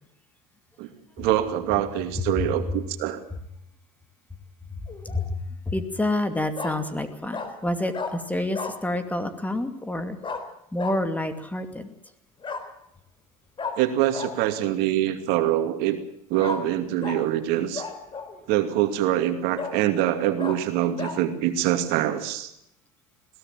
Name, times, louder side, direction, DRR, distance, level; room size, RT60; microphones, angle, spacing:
voice 1, 1.2-3.2 13.8-16.0 16.3-17.9 18.5-22.5, right 12 dB, 65° right, 7 dB, 2.5 m, -24 dB
Bark, 4.9-5.2 6.6-6.8 7.3-7.5 7.9-8.1 8.5-8.8 10.2-10.4 10.8-11.0 12.4-12.6 13.6-13.7 14.1-14.3 16.4-16.6 17.0-17.2 17.7-18.4 18.9-19.0 19.6-19.8 20.4-20.6 21.0-21.2, left 5 dB, 30° left, 3.9 m, -32 dB
voice 2, 5.0-10.2 10.7-11.9, left 1 dB, 10° left, 8 dB, 2.5 m, -28 dB
21.5 x 17.5 x 7.5 m, 0.77 s
hypercardioid pair, 80°, 18 cm